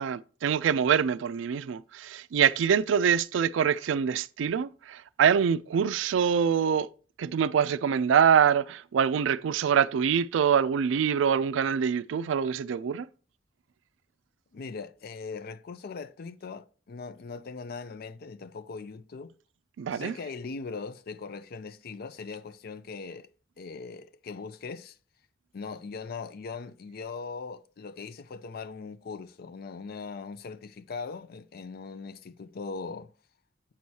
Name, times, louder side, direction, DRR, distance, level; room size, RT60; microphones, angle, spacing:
voice 1, 0.0-6.9 7.2-13.1 19.8-20.1, right 7 dB, 85° right, 0.3 m, -25 dB
voice 2, 14.5-19.3 19.9-23.3 23.6-25.0 25.5-33.1, left 4 dB, 55° left, 0.4 m, -40 dB
8.6 x 6.2 x 2.8 m
head